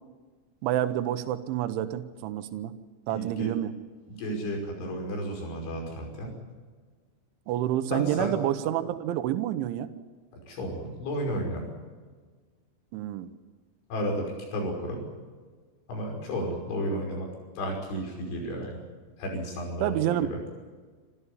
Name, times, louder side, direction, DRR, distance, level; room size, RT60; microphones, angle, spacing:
voice 1, 0.6-2.7 3.1-3.7 7.5-9.9 12.9-13.3 19.8-20.3, right 12 dB, 85° right, 9 dB, 3.4 m, -28 dB
voice 2, 3.1-3.5 4.1-6.3 7.9-8.3 10.5-11.6 13.9-15.0 15.9-17.3 17.6-18.8 19.2-20.4, equal, 85° left, 1 dB, 8.1 m, -32 dB
27.0 x 14.0 x 9.8 m, 1.5 s
omnidirectional pair, 5.3 m